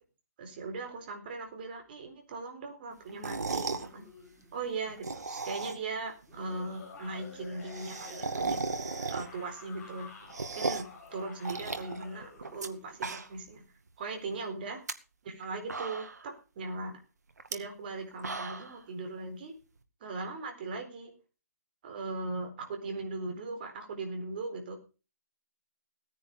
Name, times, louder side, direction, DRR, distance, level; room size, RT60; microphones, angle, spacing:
voice 1, 0.4-4.1 4.5-8.7 9.1-10.1 10.5-13.6 14.0-14.8 15.2-16.9 17.5-19.6 20.0-21.1 21.8-24.8, right 3 dB, 35° right, 4 dB, 4.2 m, -39 dB
sound 1, 3.0-4.7 6.3-12.8, left 4 dB, 15° left, 5.0 m, -50 dB
sound 2, 3.1-3.9 4.9-6.0 6.3-6.4 6.6-6.7 6.9-7.0 7.3-9.5 9.9-11.0 11.4-12.7 12.9-13.5 13.9-14.0 14.7-14.9 15.4-15.5 15.7-16.3 17.4-17.5 18.0-18.8, right 4 dB, 75° right, 2.2 m, -36 dB
17.5 x 9.9 x 5.4 m, 0.34 s
hypercardioid pair, 160°, 9 cm